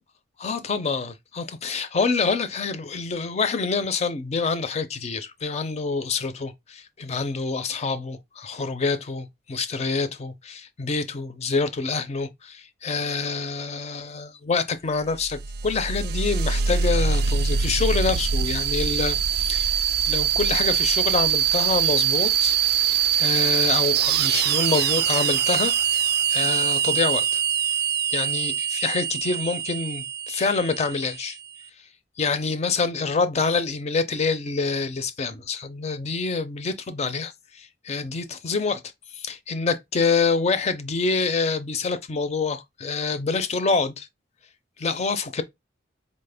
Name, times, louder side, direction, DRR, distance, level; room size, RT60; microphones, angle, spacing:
voice 1, 0.4-22.6 22.8-22.9 23.2-26.0 26.3-27.4 28.1-31.4 32.2-38.8 39.1-44.1 44.8-45.4, left 4 dB, 35° left, 0.4 m, -26 dB
sound 1, 15.2-31.5, right 8 dB, 55° right, 0.3 m, -23 dB
4.1 x 2.0 x 3.4 m
head